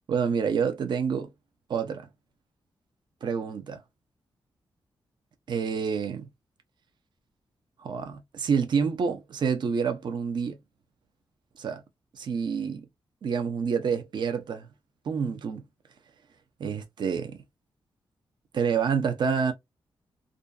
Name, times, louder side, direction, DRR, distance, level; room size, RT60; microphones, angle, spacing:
voice 1, 0.1-1.3 1.7-2.1 3.2-3.8 5.5-6.3 7.8-10.6 11.6-11.8 12.1-12.8 13.2-14.7 15.1-15.6 16.6-17.4 18.5-19.5, right 6 dB, 60° right, 0.6 m, -28 dB
2.5 x 2.3 x 2.2 m
cardioid pair, 105°, 9 cm